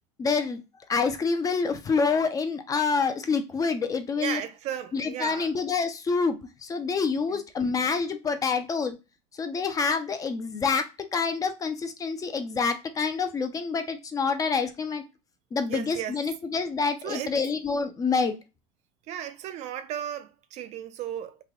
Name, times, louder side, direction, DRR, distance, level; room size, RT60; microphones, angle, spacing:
voice 1, 0.2-0.6 0.9-4.4 4.9-9.0 9.4-15.0 15.5-18.4, left 5 dB, 20° left, 0.5 m, -27 dB
voice 2, 4.2-5.5 7.3-7.4 15.6-16.2 17.0-17.4 19.1-21.4, right 10 dB, 45° right, 0.5 m, -35 dB
3.3 x 2.2 x 3.6 m
supercardioid pair, 120°, 16 cm